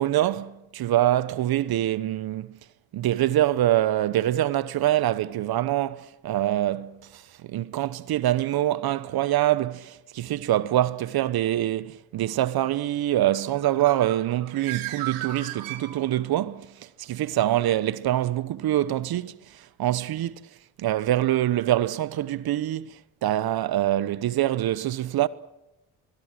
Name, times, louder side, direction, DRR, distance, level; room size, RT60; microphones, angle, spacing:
voice 1, 0.0-2.6 2.9-20.5 20.8-25.3, right 13 dB, 55° right, 1.0 m, -25 dB
Bird, 13.4-16.4, right 14 dB, 90° right, 2.7 m, -36 dB
24.5 x 22.0 x 7.6 m
supercardioid pair, 65°, 44 cm